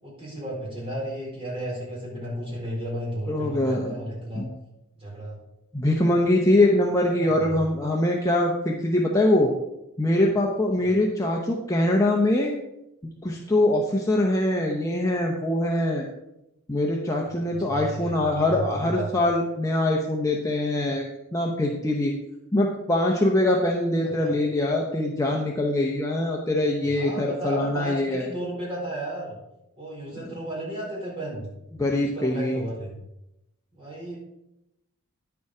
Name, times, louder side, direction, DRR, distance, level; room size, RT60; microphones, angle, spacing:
voice 1, 0.0-4.5 4.9-5.4 7.2-7.6 10.8-10.9 17.3-17.4 17.7-19.1 24.2-24.3 26.8-29.4 29.8-31.5 31.9-33.0 33.7-34.2, right 1 dB, 25° right, -4 dB, 4.4 m, -33 dB
voice 2, 3.3-4.0 4.4-4.5 5.7-9.5 10.0-12.5 13.2-16.0 16.7-21.1 21.3-22.1 22.5-28.2 31.8-32.6, left 1 dB, 15° left, -1 dB, 0.8 m, -23 dB
10.0 x 7.0 x 4.8 m, 0.88 s
head